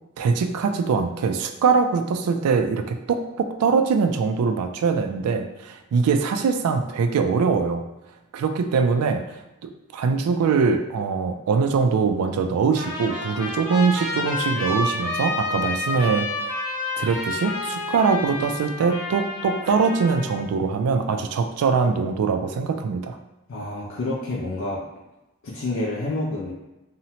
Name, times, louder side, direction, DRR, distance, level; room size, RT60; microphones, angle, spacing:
voice 1, 0.2-7.8 8.3-16.3 17.0-23.2, right 5 dB, 80° right, 7 dB, 0.3 m, -22 dB
Trumpet, 12.7-20.4, left 2 dB, 90° left, 0.9 m, -29 dB
voice 2, 23.5-24.8 25.4-26.5, left 2 dB, 60° left, -5 dB, 0.4 m, -28 dB
2.7 x 2.1 x 2.8 m, 0.99 s
head